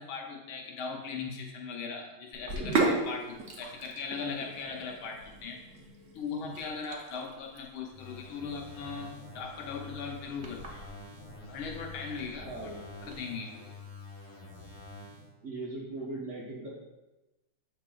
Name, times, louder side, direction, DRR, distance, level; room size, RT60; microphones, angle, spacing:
voice 1, 0.0-5.6 6.1-10.9 11.5-12.5 13.0-13.7, left 5 dB, 75° left, 1 dB, 1.6 m, -39 dB
Sink (filling or washing), 2.3-13.2, right 3 dB, 65° right, 0.7 m, -37 dB
sound 1, 7.9-15.3, left 3 dB, 30° left, 0.4 m, -47 dB
voice 2, 12.4-12.9 15.4-16.7, right 2 dB, 45° right, -6 dB, 1.1 m, -39 dB
7.6 x 5.9 x 2.4 m, 1.0 s
omnidirectional pair, 2.4 m